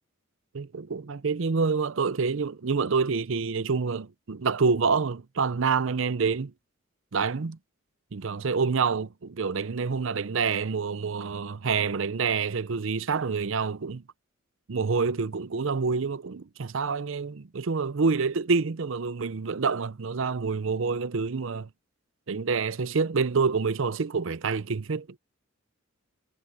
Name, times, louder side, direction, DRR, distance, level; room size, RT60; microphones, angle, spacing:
voice 1, 0.5-6.5 7.1-7.6 8.1-14.0 14.7-21.7 22.3-25.2, right 5 dB, 65° right, 0.6 m, -27 dB
head